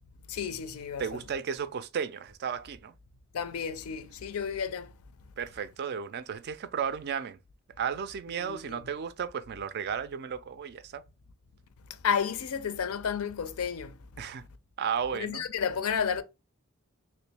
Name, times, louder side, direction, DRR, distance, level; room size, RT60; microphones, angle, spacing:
voice 1, 0.3-1.0 3.3-4.9 8.4-8.8 12.0-14.0 15.2-16.2, left 7 dB, 75° left, 0.4 m, -31 dB
voice 2, 1.0-2.9 5.4-7.4 7.8-11.0 14.2-14.4 14.8-15.4, right 7 dB, 45° right, 0.3 m, -34 dB
3.0 x 2.9 x 3.3 m
head